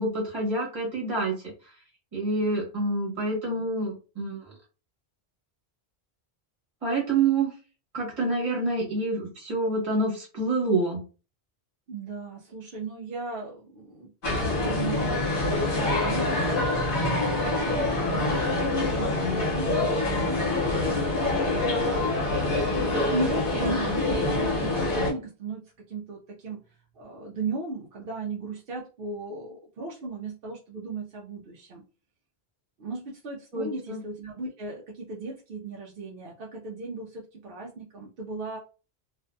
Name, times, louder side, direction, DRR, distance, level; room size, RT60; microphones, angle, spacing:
voice 1, 0.0-1.3 2.1-4.5 6.8-7.5 7.9-11.0 21.6-21.9 33.5-34.0, right 2 dB, 35° right, -3 dB, 1.1 m, -27 dB
voice 2, 11.9-14.1 14.6-16.9 17.3-31.8 32.8-38.6, right 3 dB, 65° right, -2 dB, 0.7 m, -37 dB
sound 1, 14.2-25.1, left 2 dB, 55° left, 1.1 m, -25 dB
2.5 x 2.5 x 2.2 m, 0.34 s
omnidirectional pair, 1.1 m